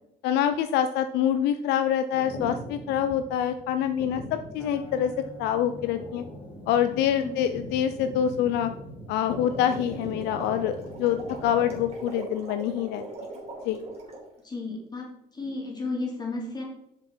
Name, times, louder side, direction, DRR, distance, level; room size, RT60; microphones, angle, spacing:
voice 1, 0.2-5.1 5.4-6.2 6.7-8.7 9.1-13.0 13.6-13.8, left 10 dB, 85° left, 9 dB, 0.5 m, -26 dB
sound 1, 2.1-11.8, equal, 45° left, 2.5 m, -41 dB
sound 2, 4.6-10.9, left 1 dB, 10° right, 2.7 m, -51 dB
sound 3, 9.3-14.3, right 2 dB, 35° right, 3.4 m, -40 dB
voice 2, 14.4-15.1 15.3-16.6, left 3 dB, 25° left, -2 dB, 2.8 m, -33 dB
6.9 x 6.7 x 4.3 m, 0.82 s
cardioid pair, 110°, 17 cm